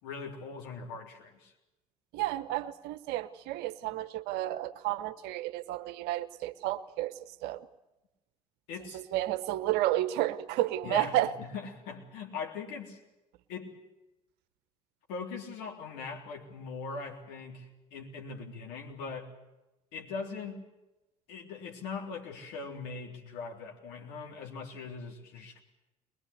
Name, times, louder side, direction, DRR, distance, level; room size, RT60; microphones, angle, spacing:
voice 1, 0.0-1.5 8.7-9.0 10.8-13.0 13.5-13.7 15.1-19.4 19.9-20.7 21.3-25.6, left 4 dB, 60° left, 2 dB, 3.6 m, -41 dB
voice 2, 2.1-7.7 8.9-11.3, right 14 dB, 60° right, 13 dB, 1.0 m, -31 dB
21.5 x 21.5 x 8.3 m, 0.98 s
figure-of-eight pair, 60°, 19 cm